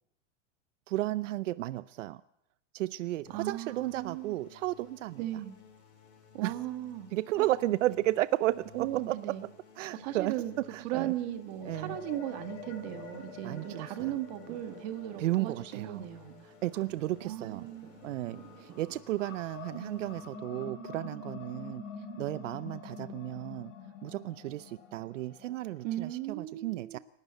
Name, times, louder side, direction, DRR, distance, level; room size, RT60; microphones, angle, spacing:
voice 1, 0.9-2.2 2.7-5.3 6.4-6.5 7.1-9.4 9.8-10.3 10.7-11.1 11.6-12.0 13.4-14.1 15.2-16.1 16.6-17.7 18.0-21.8 22.2-23.7 24.0-27.0, right 16 dB, 80° right, 16 dB, 0.7 m, -33 dB
sound 1, 3.3-20.3, left 8 dB, 50° left, 4.9 m, -56 dB
voice 2, 3.3-4.4 5.2-5.6 6.3-7.1 7.4-7.5 8.7-9.5 9.9-16.4 16.7-16.8 17.2-17.9 25.8-27.0, right 13 dB, 35° right, 8 dB, 1.6 m, -37 dB
sound 2, 5.1-19.0, right 9 dB, 20° right, 1.3 m, -58 dB
sound 3, 11.6-17.6 18.1-26.2, left 4 dB, 35° left, 5.6 m, -47 dB
28.5 x 12.5 x 8.1 m, 0.77 s
supercardioid pair, 180°, 37 cm